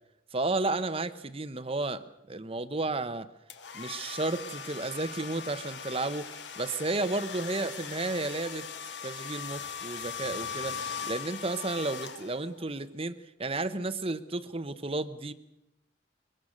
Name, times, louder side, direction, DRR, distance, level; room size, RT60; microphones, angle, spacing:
voice 1, 0.3-3.3 3.7-6.3 6.6-8.7 9.0-10.8 11.1-15.3, right 2 dB, 30° right, 12 dB, 1.1 m, -32 dB
sound 1, 3.5-12.6, left 6 dB, 70° left, 1.9 m, -40 dB
23.5 x 22.5 x 6.6 m, 0.86 s
head